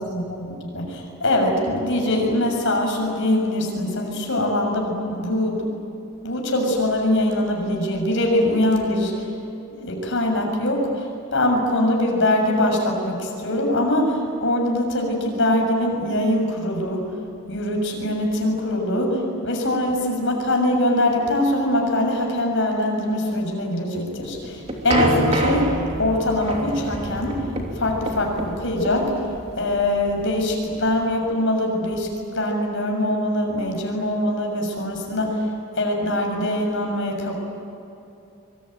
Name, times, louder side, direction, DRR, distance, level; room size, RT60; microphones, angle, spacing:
voice 1, 0.0-0.4 0.7-5.7 6.2-9.3 9.7-17.1 17.5-25.7 26.0-27.5 27.7-29.2 29.6-32.1 32.3-35.5 35.7-37.3, left 1 dB, 55° left, 1 dB, 6.9 m, -23 dB
sound 1, 24.2-31.1, right 1 dB, 30° right, 3.1 m, -27 dB
25.0 x 24.5 x 9.2 m, 2.7 s
head